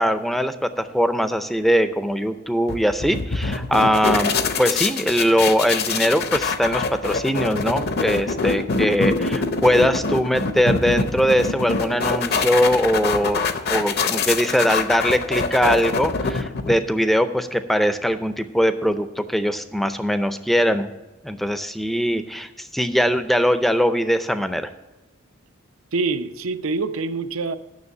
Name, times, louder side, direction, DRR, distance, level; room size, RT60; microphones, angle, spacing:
voice 1, 0.0-13.4 13.7-20.9 21.2-24.7, equal, ahead, 0.5 m, -21 dB
sound 1, 2.7-17.0, left 4 dB, 50° left, 0.7 m, -25 dB
voice 2, 25.9-27.5, right 3 dB, 75° right, 0.6 m, -25 dB
9.7 x 6.6 x 6.7 m
head